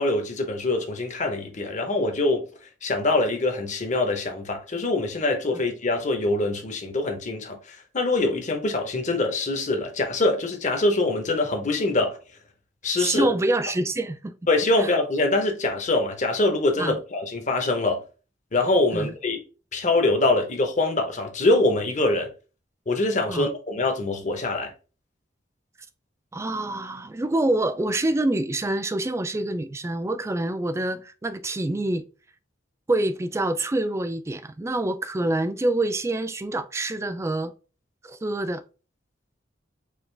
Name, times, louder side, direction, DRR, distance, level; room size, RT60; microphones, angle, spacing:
voice 1, 0.0-2.5 2.8-12.2 12.8-13.3 14.5-18.0 18.5-19.4 19.7-22.3 22.9-24.7, left 2 dB, 40° left, 0.9 m, -24 dB
voice 2, 13.0-14.3 14.8-14.9 16.8-17.0 18.9-19.1 23.3-23.5 26.3-32.0 32.9-37.5 38.0-38.6, right 2 dB, 15° right, 0.3 m, -26 dB
4.9 x 2.4 x 3.3 m
head